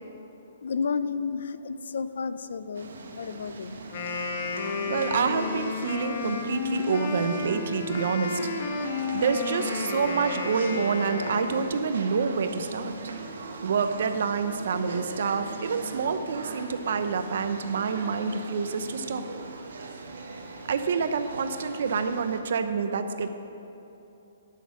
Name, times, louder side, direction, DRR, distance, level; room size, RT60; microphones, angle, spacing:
voice 1, 0.6-3.8, left 5 dB, 75° left, 13 dB, 0.5 m, -32 dB
sound 1, 2.7-22.4, right 4 dB, 80° right, 1.3 m, -41 dB
Wind instrument woodwind instrument, 3.8-11.8, left 4 dB, 45° left, 1.2 m, -32 dB
sound 2, 4.4-4.6 4.9-6.9 7.2-9.2 9.5-11.5 11.8-13.9 14.1-16.2 16.5-18.5 18.8-20.8 21.1-22.2, right 3 dB, 20° right, 2.2 m, -48 dB
voice 2, 4.9-8.5 9.1-13.0 13.6-19.3 20.7-23.3, right 5 dB, 60° right, 9 dB, 0.8 m, -27 dB
11.0 x 6.5 x 7.2 m, 2.9 s
hypercardioid pair, 160°, 0 cm